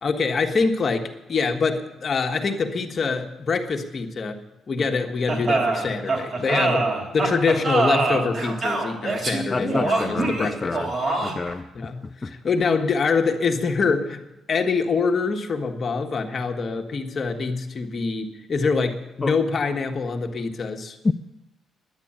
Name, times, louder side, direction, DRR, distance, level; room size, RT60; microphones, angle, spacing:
voice 1, 0.0-4.4 4.7-6.9 7.1-10.8 11.2-11.3 11.7-14.2 14.5-21.0, left 4 dB, 45° left, 1.6 m, -25 dB
sound 1, 5.3-11.5, right 3 dB, 45° right, 3.5 m, -24 dB
voice 2, 9.5-10.9 11.2-11.6 12.2-12.3 19.2-19.4 21.0-21.1, left 3 dB, 25° left, 0.5 m, -27 dB
11.0 x 9.8 x 8.9 m
cardioid pair, 90°, 0 cm